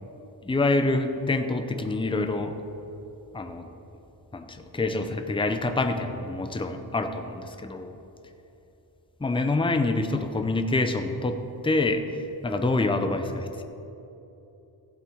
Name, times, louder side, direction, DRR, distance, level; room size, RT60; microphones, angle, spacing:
voice 1, 0.4-2.6 3.3-3.7 4.3-7.9 9.2-11.4 11.6-13.6, left 2 dB, 10° left, 7 dB, 0.5 m, -26 dB
15.0 x 8.1 x 4.6 m, 3.0 s
wide cardioid pair, 175°, 45 cm